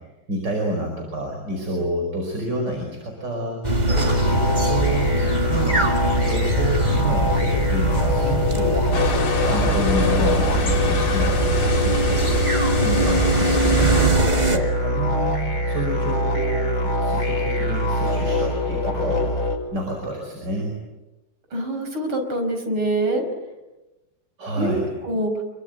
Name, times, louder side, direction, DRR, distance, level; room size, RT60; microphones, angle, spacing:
voice 1, 0.3-3.6 3.9-5.1 5.5-8.8 9.4-12.3 12.8-15.4 15.7-19.2 19.7-20.7 24.4-24.9, right 1 dB, 55° right, 2 dB, 6.0 m, -28 dB
sound 1, 3.6-14.6, right 2 dB, 20° right, 2.1 m, -23 dB
sound 2, 3.9-19.6, left 1 dB, 60° left, 6.5 m, -23 dB
sound 3, 8.9-14.1, left 3 dB, 80° left, 3.9 m, -28 dB
voice 2, 21.5-23.2 24.6-24.8 25.0-25.4, right 1 dB, 75° right, 5 dB, 6.2 m, -25 dB
28.0 x 23.5 x 9.2 m, 1.1 s
omnidirectional pair, 2.3 m